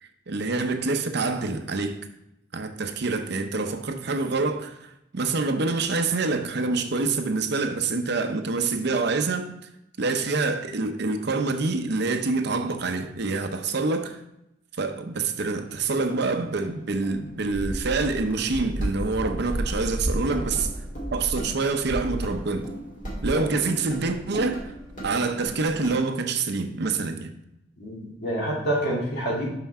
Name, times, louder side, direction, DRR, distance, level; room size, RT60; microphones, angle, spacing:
voice 1, 0.0-2.0 2.5-9.5 10.0-14.2 14.8-20.7 21.1-22.7 23.2-24.7 25.0-27.3, right 3 dB, 65° right, 7 dB, 0.7 m, -26 dB
sound 1, 15.7-25.9, right 1 dB, 45° left, 2.3 m, -40 dB
sound 2, 17.5-22.7 23.0-23.3, right 1 dB, 10° right, 0.3 m, -32 dB
voice 2, 27.8-29.5, right 1 dB, 60° left, -4 dB, 2.5 m, -27 dB
5.9 x 5.8 x 4.2 m, 0.83 s
head